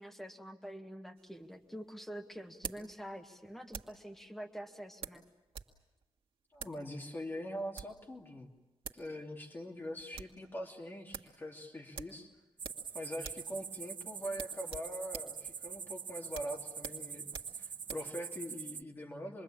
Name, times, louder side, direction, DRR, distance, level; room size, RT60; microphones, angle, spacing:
voice 1, 0.0-5.2, equal, 5° left, 4 dB, 1.7 m, -46 dB
sound 1, 1.2-4.1 5.0-5.8 6.0-6.1 6.5-6.8 7.5-8.0 8.6-8.7 8.8-9.1 9.4-9.5 9.8-10.4 10.7-10.8 11.1-11.3 11.9-12.9 13.2-13.5 13.8-13.9 14.3-18.1, right 6 dB, 85° right, 1.7 m, -47 dB
voice 2, 6.5-8.5 8.9-12.3 12.9-19.4, equal, 25° left, 1 dB, 2.7 m, -43 dB
sound 2, 12.6-18.8, right 6 dB, 65° right, 1.1 m, -44 dB
27.0 x 22.0 x 8.8 m, 1.0 s
wide cardioid pair, 180°, 9 cm